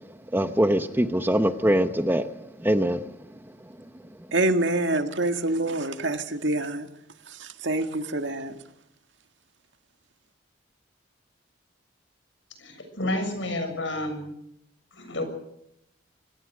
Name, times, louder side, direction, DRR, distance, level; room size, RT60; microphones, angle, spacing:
voice 1, 0.3-2.2 2.6-3.0, right 1 dB, 10° right, 10 dB, 0.8 m, -22 dB
voice 2, 4.3-6.9 7.4-8.5, right 2 dB, 70° right, 7 dB, 1.9 m, -26 dB
voice 3, 12.6-14.3 14.9-15.2, left 1 dB, 75° left, 7 dB, 7.1 m, -30 dB
25.5 x 18.0 x 6.7 m, 0.79 s
head